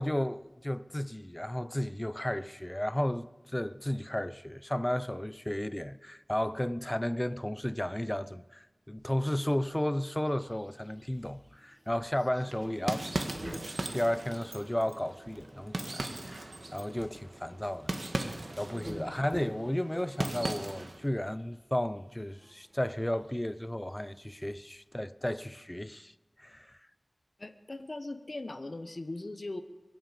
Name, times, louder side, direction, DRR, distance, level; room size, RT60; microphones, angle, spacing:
voice 1, 0.0-17.9 18.2-26.1 26.4-26.8, left 1 dB, 15° left, 0.6 m, -33 dB
sound 1, 9.5-24.9, equal, 20° right, 3.6 m, -51 dB
sound 2, 12.4-21.0, right 2 dB, 60° right, 1.6 m, -39 dB
voice 2, 27.4-29.6, left 2 dB, 50° left, 1.1 m, -39 dB
22.5 x 7.7 x 8.3 m
wide cardioid pair, 60°, 0 cm